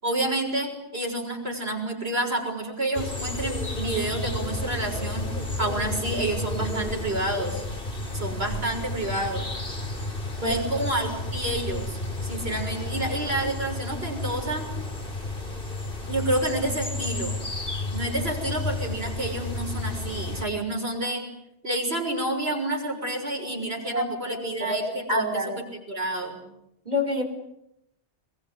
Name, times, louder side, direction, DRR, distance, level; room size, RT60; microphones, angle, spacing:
voice 1, 0.0-5.3 5.6-7.6 8.1-9.4 10.4-14.7 16.1-17.4 17.9-21.2 21.6-25.6 25.9-26.4, right 1 dB, 65° right, 2 dB, 6.8 m, -29 dB
sound 1, 2.9-20.4, left 2 dB, 55° left, 3.6 m, -32 dB
voice 2, 23.9-25.6 26.9-27.2, left 1 dB, 40° right, 4 dB, 5.5 m, -27 dB
27.0 x 22.5 x 9.8 m, 0.85 s
omnidirectional pair, 1.1 m